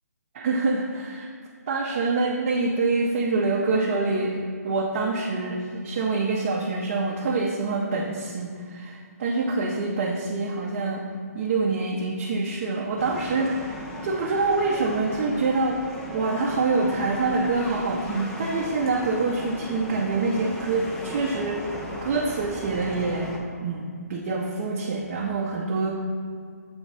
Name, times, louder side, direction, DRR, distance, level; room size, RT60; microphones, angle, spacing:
voice 1, 0.3-1.3 1.7-11.0 11.3-26.0, right 3 dB, 40° right, -2 dB, 0.6 m, -26 dB
sound 1, 13.0-23.4, left 1 dB, 5° left, 0.4 m, -37 dB
6.9 x 3.1 x 5.4 m, 2.2 s
hypercardioid pair, 155°, 9 cm